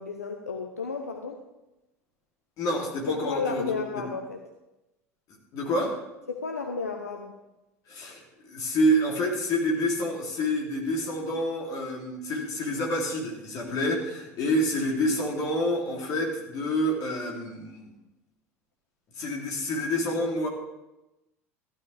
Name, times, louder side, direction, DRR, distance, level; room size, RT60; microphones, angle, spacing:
voice 1, 0.0-1.4 3.1-4.4 6.3-7.4, left 4 dB, 80° left, 3 dB, 0.8 m, -32 dB
voice 2, 2.6-4.0 5.5-6.0 7.9-17.9 19.2-20.5, equal, 45° left, -1 dB, 3.3 m, -28 dB
15.0 x 11.5 x 3.5 m, 0.97 s
figure-of-eight pair, 70°, 8 cm